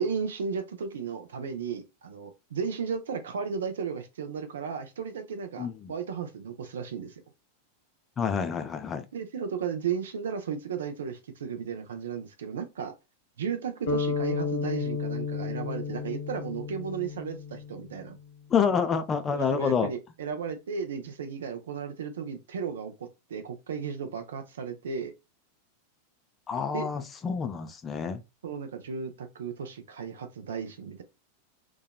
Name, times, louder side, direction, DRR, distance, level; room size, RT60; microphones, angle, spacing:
voice 1, 0.0-7.1 9.1-12.9 13.4-18.2 19.3-25.1 26.7-26.9 28.4-31.0, right 6 dB, 65° right, 0.5 m, -34 dB
voice 2, 5.6-5.9 8.2-9.0 18.5-19.9 26.5-28.2, left 6 dB, 20° left, 0.4 m, -28 dB
sound 1, 13.9-18.1, left 5 dB, 60° left, 0.7 m, -32 dB
2.8 x 2.3 x 2.2 m
figure-of-eight pair, 90°, 0 cm